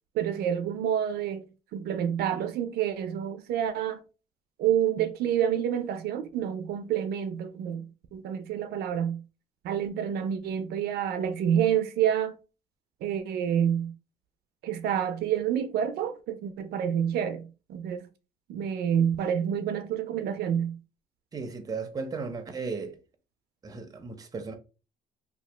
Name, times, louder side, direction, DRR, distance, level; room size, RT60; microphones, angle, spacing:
voice 1, 0.2-4.0 4.6-9.2 9.6-12.3 13.0-13.9 14.6-18.1 18.5-20.8, right 9 dB, 70° right, 0.4 m, -28 dB
voice 2, 21.3-23.0 23.6-24.5, right 4 dB, 20° right, 0.6 m, -35 dB
2.8 x 2.3 x 3.3 m
cardioid pair, 110°, 17 cm